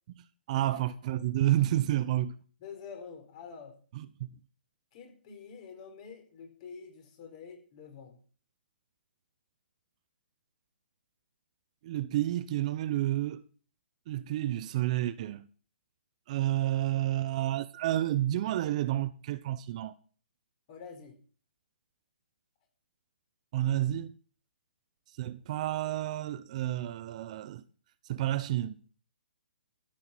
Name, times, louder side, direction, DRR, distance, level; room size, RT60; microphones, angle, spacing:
voice 1, 0.5-2.3 3.9-4.3 11.8-13.4 14.1-15.4 16.3-19.9 23.5-24.1 25.2-27.6 28.1-28.8, right 13 dB, 40° right, 0.8 m, -30 dB
voice 2, 2.6-3.8 4.9-8.2 20.7-21.2, left 6 dB, 40° left, 4.6 m, -47 dB
13.5 x 8.7 x 6.0 m
hypercardioid pair, 145°, 6 cm